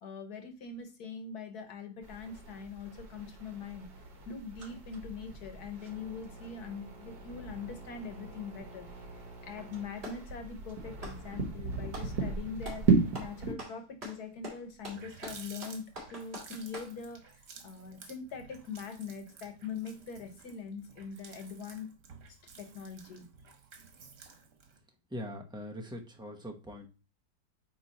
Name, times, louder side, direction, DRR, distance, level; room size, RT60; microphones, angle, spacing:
voice 1, 0.0-3.9 4.2-8.9 9.1-15.8 16.1-21.9 22.6-23.3, left 5 dB, 70° left, 6 dB, 1.6 m, -42 dB
sound 1, 2.0-13.5, right 4 dB, 70° right, 1.9 m, -36 dB
Clapping, 9.5-10.3 10.9-12.2 12.6-12.9 13.1-17.0, right 1 dB, 40° right, 2.7 m, -45 dB
Water tap faucet, 14.3-14.4 14.7-24.8, right 5 dB, 85° right, 1.7 m, -53 dB
voice 2, 25.1-26.9, equal, 5° right, 1 dB, 0.4 m, -42 dB
9.1 x 3.1 x 4.1 m, 0.33 s
omnidirectional pair, 1.7 m